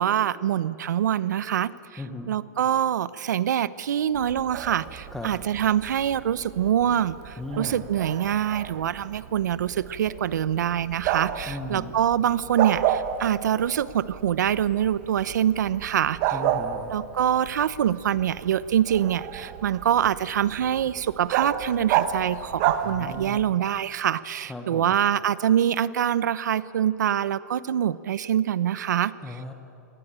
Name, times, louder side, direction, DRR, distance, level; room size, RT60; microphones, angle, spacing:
voice 1, 0.0-2.0 2.3-16.2 16.9-29.1, right 10 dB, 80° right, 17 dB, 0.9 m, -25 dB
voice 2, 2.0-2.3 5.1-5.3 7.4-7.9 11.5-12.0 16.3-17.0 22.8-23.4 24.4-25.0 29.2-29.5, left 2 dB, 5° left, 5 dB, 1.0 m, -36 dB
Bark, 4.1-23.5, right 10 dB, 35° right, 1.2 m, -32 dB
25.0 x 18.0 x 8.9 m, 2.7 s
supercardioid pair, 170°, 9 cm